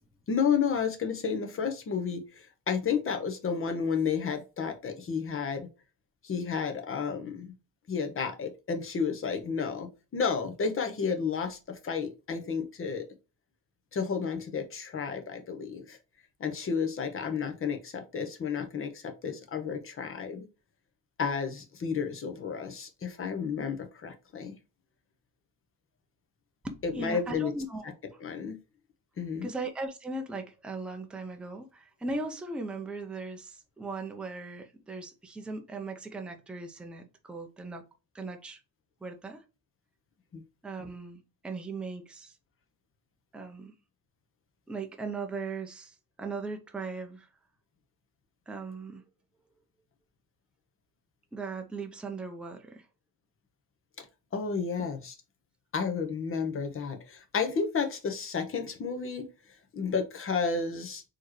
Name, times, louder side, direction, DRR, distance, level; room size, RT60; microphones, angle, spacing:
voice 1, 0.3-5.7 6.2-7.5 7.9-13.0 13.9-16.0 16.4-20.5 21.2-24.5 26.8-27.5 28.2-28.6 29.2-29.5 40.3-40.4 54.0-54.1 54.3-55.1 55.7-59.3 59.7-61.0, left 6 dB, 30° left, 0.9 m, -31 dB
voice 2, 26.6-27.9 29.4-37.8 38.1-38.6 39.0-39.4 40.6-42.3 43.3-43.7 44.7-47.3 48.5-49.0 51.3-52.9 54.8-54.9, right 3 dB, ahead, 0.5 m, -38 dB
4.3 x 3.1 x 3.0 m
cardioid pair, 140°, 45 cm